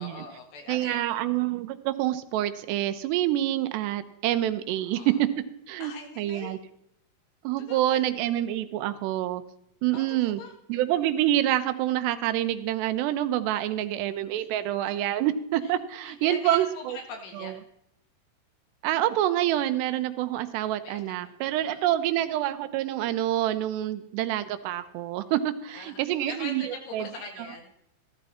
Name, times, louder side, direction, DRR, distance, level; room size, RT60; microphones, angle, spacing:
voice 1, 0.0-1.1 4.8-5.2 5.8-6.6 7.6-8.0 9.9-10.5 14.4-14.5 14.8-15.0 15.6-15.7 16.0-17.6 20.8-21.3 21.6-22.1 25.7-27.7, left 4 dB, 80° left, 3 dB, 3.8 m, -42 dB
voice 2, 0.7-5.3 5.7-5.9 6.2-6.6 7.4-9.4 9.8-10.4 10.7-17.0 17.4-17.5 18.8-26.6 26.9-27.0, right 13 dB, 85° right, 11 dB, 2.9 m, -27 dB
14.5 x 13.0 x 4.2 m, 0.75 s
omnidirectional pair, 4.8 m